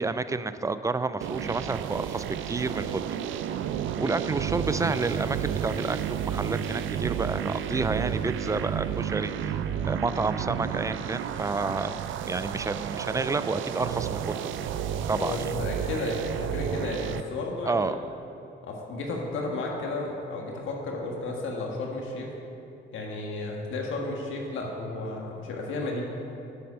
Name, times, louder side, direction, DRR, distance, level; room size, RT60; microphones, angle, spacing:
voice 1, 0.0-3.1 4.0-9.6 9.9-12.0 12.3-14.4 15.1-15.4 17.7-18.0, right 3 dB, 15° right, 12 dB, 0.4 m, -30 dB
sound 1, 1.2-17.2, right 9 dB, 75° right, 0.5 m, -31 dB
voice 2, 15.1-18.0 18.6-22.3 22.9-26.0, left 2 dB, 80° left, -1 dB, 1.5 m, -33 dB
8.4 x 7.6 x 5.6 m, 2.8 s
cardioid pair, 90°, 20 cm